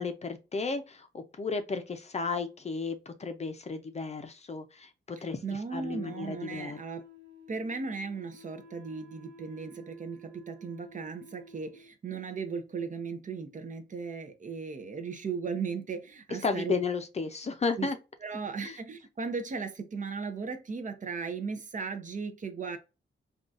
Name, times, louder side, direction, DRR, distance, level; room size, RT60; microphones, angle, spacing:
voice 1, 0.0-6.8 16.4-18.0 18.6-18.8, left 4 dB, 35° left, 0.5 m, -33 dB
voice 2, 5.4-7.0 7.5-16.7 17.8-17.9 18.2-22.8, right 5 dB, 40° right, 0.5 m, -36 dB
Wind instrument woodwind instrument, 6.0-11.9, right 1 dB, 65° right, 1.2 m, -52 dB
3.7 x 2.3 x 2.4 m
wide cardioid pair, 110°, 19 cm